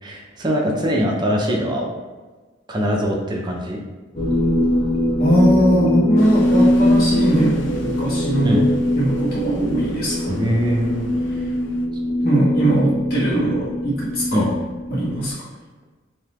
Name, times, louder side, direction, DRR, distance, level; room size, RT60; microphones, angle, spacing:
voice 1, 0.0-1.9 2.7-3.8 8.4-8.6 10.3-11.1 14.3-14.5, equal, 25° right, 0 dB, 0.5 m, -22 dB
sound 1, 4.1-15.3, left 1 dB, 30° left, 0.7 m, -21 dB
voice 2, 5.2-8.6 9.0-10.3 12.2-14.4 14.9-15.3, right 1 dB, 55° left, -9 dB, 1.4 m, -20 dB
sound 2, 6.2-11.9, left 2 dB, 70° left, 0.5 m, -39 dB
3.8 x 2.8 x 3.0 m, 1.3 s
head